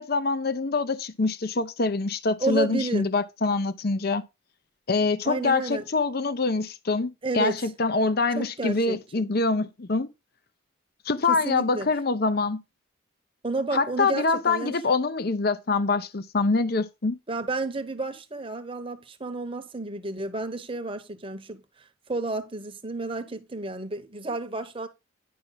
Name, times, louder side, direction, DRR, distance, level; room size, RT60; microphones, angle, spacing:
voice 1, 0.0-4.2 4.9-10.1 11.0-12.6 13.7-17.2, left 3 dB, 50° left, 0.6 m, -25 dB
voice 2, 2.4-3.1 5.2-5.9 7.2-7.6 8.3-9.3 11.3-11.9 13.4-14.7 17.3-21.6 22.1-24.9, right 2 dB, 25° right, 0.9 m, -31 dB
10.5 x 5.7 x 3.9 m
head